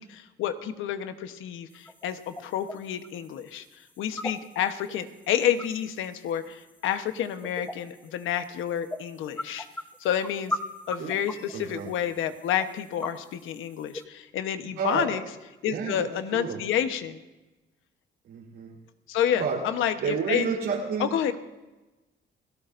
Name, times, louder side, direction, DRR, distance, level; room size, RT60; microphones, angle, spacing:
voice 1, 0.0-3.6 4.0-9.7 10.0-10.6 10.9-15.2 15.6-17.2 19.1-20.5 21.0-21.4, left 9 dB, 90° left, 9 dB, 1.1 m, -29 dB
sound 1, 1.7-14.0, left 1 dB, 10° left, 1.1 m, -40 dB
voice 2, 11.5-11.9 14.8-15.1 15.6-16.6 18.2-18.7 19.3-19.6 20.0-21.1, right 6 dB, 90° right, -4 dB, 3.9 m, -30 dB
29.5 x 17.5 x 2.6 m, 1.1 s
cardioid pair, 90°, 20 cm